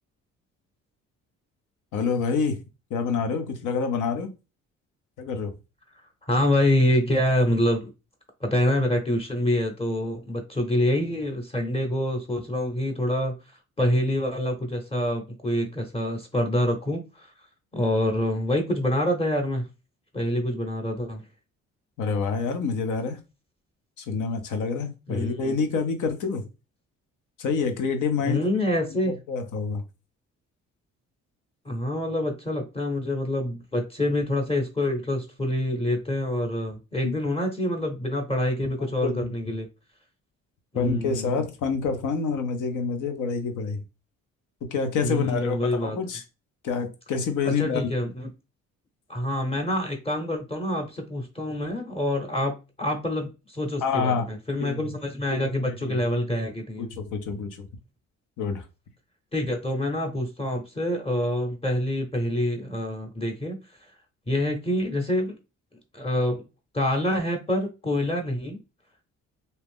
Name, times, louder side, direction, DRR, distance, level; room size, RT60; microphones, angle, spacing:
voice 1, 1.9-2.6 2.9-4.3 5.2-5.5 22.0-23.2 24.0-26.4 27.4-28.5 28.8-29.8 37.0-37.1 38.8-39.3 40.7-43.8 44.7-46.2 46.6-47.9 53.8-54.2 54.6-54.9 55.3-56.0 56.8-57.7 58.4-58.6, left 5 dB, 80° left, 0.8 m, -27 dB
voice 2, 6.2-7.9 8.4-13.3 13.8-17.3 17.7-19.7 20.1-21.2 25.1-25.6 28.2-29.1 31.6-39.7 40.7-41.4 45.0-46.0 47.4-48.3 49.1-52.5 52.8-56.9 59.3-63.6 64.3-65.4 65.9-66.4 66.7-68.6, left 1 dB, 20° left, 0.9 m, -26 dB
2.8 x 2.4 x 3.5 m
cardioid pair, 90°, 30 cm